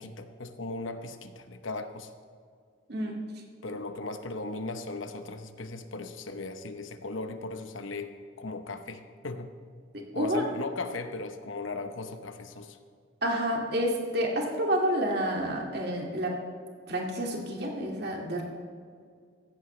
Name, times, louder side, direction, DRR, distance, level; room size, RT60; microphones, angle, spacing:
voice 1, 0.0-2.1 3.6-9.5 10.1-12.8, left 3 dB, 75° left, 8 dB, 1.0 m, -37 dB
voice 2, 10.1-10.5 13.2-16.4 16.9-18.4, equal, 55° right, 0 dB, 2.2 m, -29 dB
16.5 x 14.5 x 3.3 m, 2.1 s
head